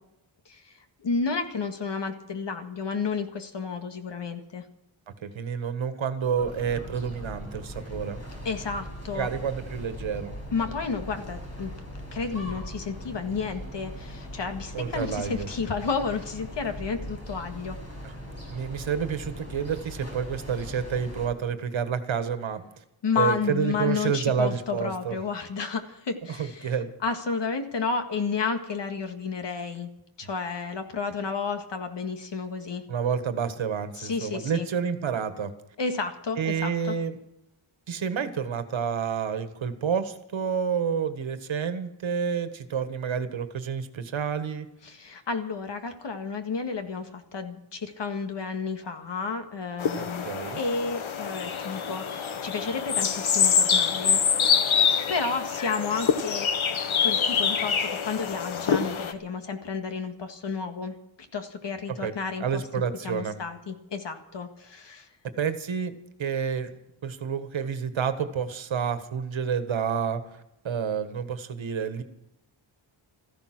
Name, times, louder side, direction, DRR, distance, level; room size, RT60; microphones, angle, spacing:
voice 1, 0.5-4.6 8.5-9.3 10.5-11.7 12.1-17.8 23.0-26.7 27.0-29.9 30.2-32.8 33.9-34.7 35.8-37.0 44.8-50.3 50.5-54.8 55.1-56.5 57.0-61.0 61.3-62.6 63.0-65.1, left 5 dB, 60° left, 7 dB, 1.9 m, -31 dB
voice 2, 5.1-8.2 9.1-10.3 14.7-15.5 18.5-22.6 23.2-25.2 26.4-26.9 32.9-35.5 36.4-37.2 37.9-44.7 50.0-50.6 62.0-62.1 62.4-63.4 65.4-65.9 66.2-66.7 67.0-70.2 70.6-72.0, right 7 dB, 70° right, 10 dB, 1.6 m, -29 dB
sound 1, 6.3-21.3, equal, 30° left, 6.2 m, -40 dB
sound 2, 49.8-59.1, left 7 dB, 75° left, 1.4 m, -25 dB
16.0 x 14.5 x 6.1 m, 0.83 s
wide cardioid pair, 150°, 48 cm